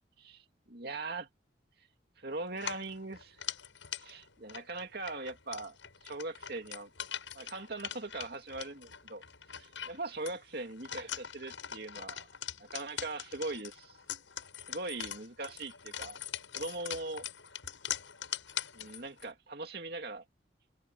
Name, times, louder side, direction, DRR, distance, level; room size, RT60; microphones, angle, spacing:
voice 1, 0.7-1.3 2.2-3.4 4.0-5.7 6.0-6.9 7.3-9.2 9.5-12.3 12.6-14.0 14.7-16.2 16.5-17.2 18.7-20.2, right 2 dB, 55° right, 2.7 m, -40 dB
sound 1, 2.5-19.3, left 9 dB, 80° left, 7.3 m, -43 dB
open air
head